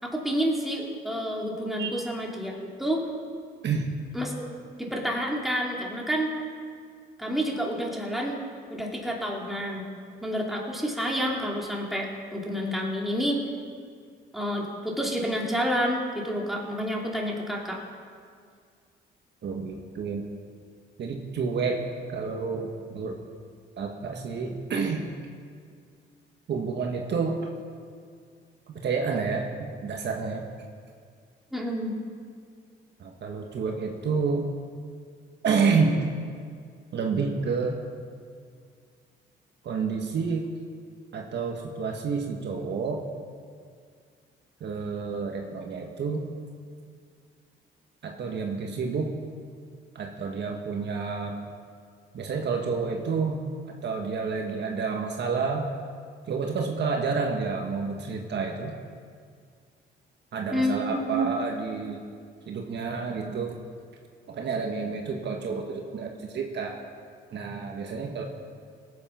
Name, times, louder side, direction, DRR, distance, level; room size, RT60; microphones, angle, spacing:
voice 1, 0.0-3.0 4.1-4.3 4.8-6.3 7.2-8.4 8.7-9.8 10.2-13.4 14.3-17.8 31.5-31.9 60.5-61.3, equal, ahead, -2 dB, 2.8 m, -29 dB
voice 2, 3.6-4.0 19.4-20.2 21.0-21.8 22.1-23.2 23.8-25.0 26.5-27.5 28.7-30.5 33.0-34.6 35.4-36.1 36.9-37.8 39.6-40.5 41.1-43.1 44.6-46.3 48.0-49.2 49.9-51.4 52.1-53.4 53.8-55.7 56.3-58.8 60.3-62.0 62.5-63.6 64.3-66.8 67.3-68.2, right 5 dB, 60° right, 2 dB, 1.6 m, -29 dB
18.5 x 8.6 x 5.8 m, 2.1 s
cardioid pair, 90°, 20 cm